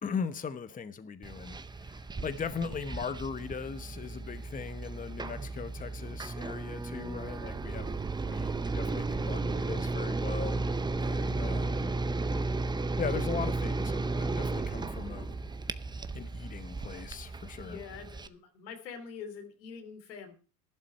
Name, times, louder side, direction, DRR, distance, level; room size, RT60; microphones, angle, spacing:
voice 1, 0.0-10.6 10.9-11.9 13.0-15.4 16.1-17.8, left 6 dB, 15° left, 0.9 m, -39 dB
sound 1, 1.2-18.3, right 3 dB, 10° right, 0.6 m, -34 dB
voice 2, 17.6-20.3, left 6 dB, 85° left, 3.0 m, -45 dB
11.5 x 11.5 x 4.5 m
hypercardioid pair, 90°, 49 cm